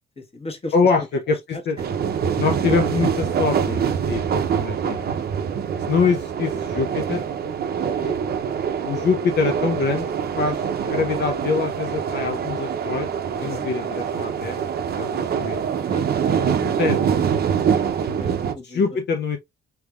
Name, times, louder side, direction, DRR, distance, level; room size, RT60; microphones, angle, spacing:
voice 1, 0.2-0.7 1.5-1.6 6.5-6.7 7.7-8.2 10.2-10.6 13.3-13.7 15.8-16.0 17.8-17.9 18.2-18.8, left 1 dB, 30° left, 1.3 m, -38 dB
voice 2, 0.7-1.8 2.4-4.2 4.5-5.1 5.9-7.2 8.8-10.1 10.4-10.6 10.8-13.1 13.4-14.7 14.9-15.6 16.4-17.1 18.6-19.4, left 5 dB, 60° left, 0.7 m, -24 dB
sound 1, 1.8-18.5, right 7 dB, 50° right, 0.6 m, -24 dB
4.5 x 3.5 x 2.4 m
cardioid pair, 90°, 20 cm